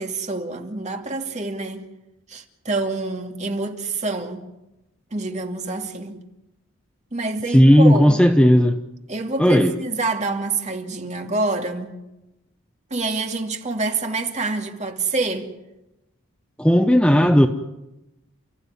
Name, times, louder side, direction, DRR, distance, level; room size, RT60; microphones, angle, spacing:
voice 1, 0.0-1.9 2.3-4.4 5.1-6.2 7.1-8.2 9.1-12.0 12.9-15.5, right 3 dB, 35° right, 2.5 m, -27 dB
voice 2, 7.5-8.8 9.4-9.7 16.6-17.5, equal, 5° left, 0.9 m, -14 dB
30.0 x 15.0 x 9.7 m
head